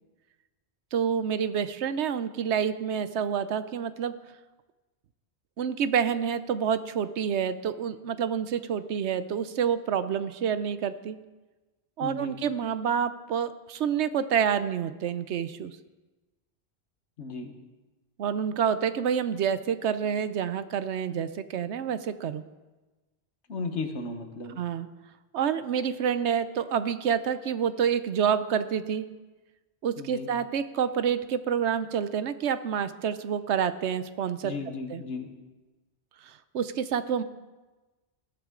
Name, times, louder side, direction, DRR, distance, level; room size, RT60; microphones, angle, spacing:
voice 1, 0.9-4.1 5.6-11.2 12.0-15.7 18.2-22.4 24.6-24.9 25.3-29.1 29.8-34.5 34.9-35.0 36.2-37.2, right 8 dB, 80° right, 12 dB, 1.0 m, -28 dB
voice 2, 12.0-12.4 17.2-17.6 23.5-24.6 30.0-30.3 34.4-35.3, left 4 dB, 80° left, 6 dB, 1.6 m, -35 dB
18.5 x 12.5 x 3.8 m, 1.2 s
omnidirectional pair, 1.1 m